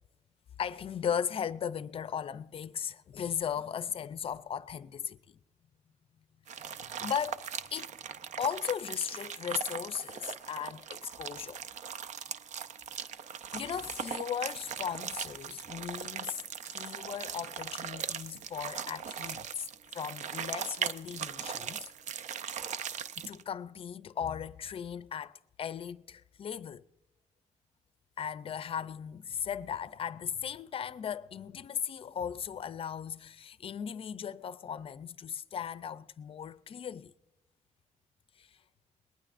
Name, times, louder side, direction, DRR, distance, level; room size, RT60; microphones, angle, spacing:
voice 1, 0.6-5.4 6.5-7.9 8.4-11.6 13.0-13.1 13.5-16.5 16.7-21.9 23.2-26.8 28.2-37.1 38.4-38.6, left 8 dB, 45° left, 0.4 m, -37 dB
sound 1, 6.5-23.4, right 8 dB, 70° right, 0.5 m, -39 dB
21.0 x 19.0 x 2.5 m
wide cardioid pair, 150°, 13 cm